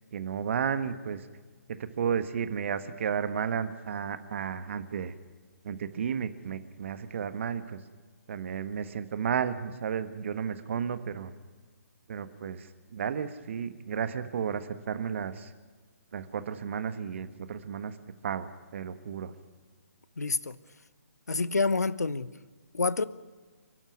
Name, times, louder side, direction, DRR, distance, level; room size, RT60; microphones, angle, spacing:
voice 1, 0.1-1.3 1.7-5.1 5.6-7.8 8.3-11.3 12.1-15.5 16.1-18.0 18.2-19.3, right 7 dB, 50° right, 1.4 m, -33 dB
voice 2, 20.2-20.6 21.3-22.3 22.7-23.0, left 3 dB, 80° left, 1.0 m, -27 dB
29.0 x 12.5 x 9.4 m
figure-of-eight pair, 140°, 9 cm